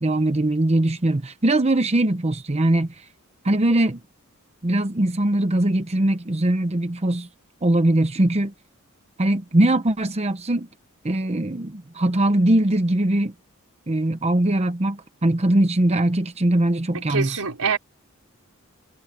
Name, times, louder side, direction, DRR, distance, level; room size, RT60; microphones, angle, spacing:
voice 1, 0.0-3.1 3.4-4.0 4.6-7.3 7.6-8.5 9.2-10.7 11.0-13.3 13.9-17.4, right 1 dB, 30° right, 0.8 m, -21 dB
voice 2, 16.9-17.8, right 5 dB, 85° right, 4.6 m, -25 dB
head